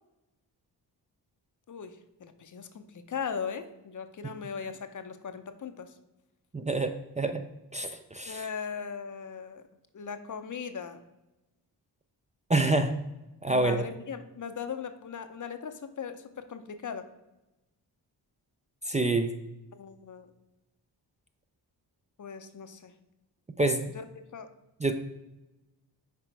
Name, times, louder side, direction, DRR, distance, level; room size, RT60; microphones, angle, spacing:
voice 1, 1.7-6.0 8.3-9.6 9.9-11.0 13.5-17.1 19.7-20.3 22.2-22.9 23.9-24.5, left 6 dB, 45° left, 9 dB, 0.7 m, -39 dB
voice 2, 6.5-7.4 7.7-8.4 12.5-12.9 13.4-13.8 18.9-19.3 23.6-23.9 24.8-24.9, right 2 dB, 15° right, 7 dB, 0.5 m, -27 dB
6.0 x 4.4 x 4.6 m, 0.98 s
cardioid pair, 60°, 44 cm